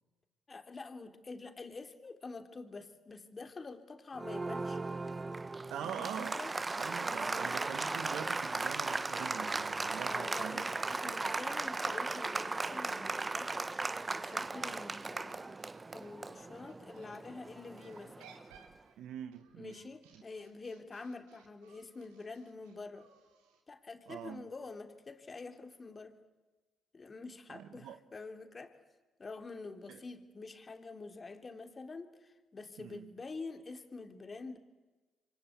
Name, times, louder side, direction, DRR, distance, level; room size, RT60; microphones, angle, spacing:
voice 1, 0.5-4.9 5.8-6.5 7.0-7.2 10.0-13.8 14.1-15.6 15.9-18.3 19.5-23.1 23.7-26.2 26.9-28.7 29.2-34.6, left 3 dB, 35° left, 3.4 m, -47 dB
Applause, 4.2-18.5, right 3 dB, 25° right, 1.0 m, -37 dB
voice 2, 5.7-6.3 6.8-10.6 19.0-19.8 24.1-24.5 27.5-28.0 29.9-30.0 32.8-33.1, right 9 dB, 75° right, 1.5 m, -44 dB
sound 1, 11.9-17.2 17.7-23.6, right 7 dB, 90° right, 3.3 m, -62 dB
28.0 x 24.5 x 8.7 m
supercardioid pair, 55°, 0 cm